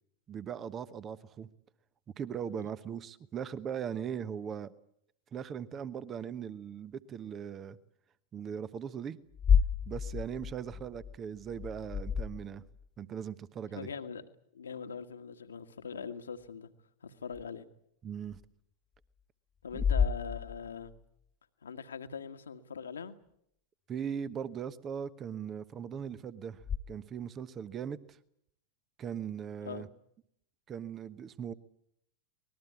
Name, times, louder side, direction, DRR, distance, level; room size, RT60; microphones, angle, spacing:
voice 1, 0.3-1.5 2.2-4.7 5.3-7.8 8.3-9.2 9.9-12.6 13.0-13.9 18.0-18.4 19.7-19.8 23.9-26.6 26.9-28.2 29.0-29.9 30.7-31.5, right 8 dB, 25° right, 1.1 m, -39 dB
sound 1, 9.3-12.9 17.3-17.4 18.3-18.4 19.7-21.0 26.6-26.8, left 7 dB, 20° left, 1.3 m, -30 dB
voice 2, 13.7-14.2 14.5-16.7 17.0-17.7 19.6-20.9 21.6-23.1 29.6-29.9, left 6 dB, 70° left, 1.6 m, -42 dB
25.0 x 20.5 x 8.4 m
figure-of-eight pair, 90°, 0 cm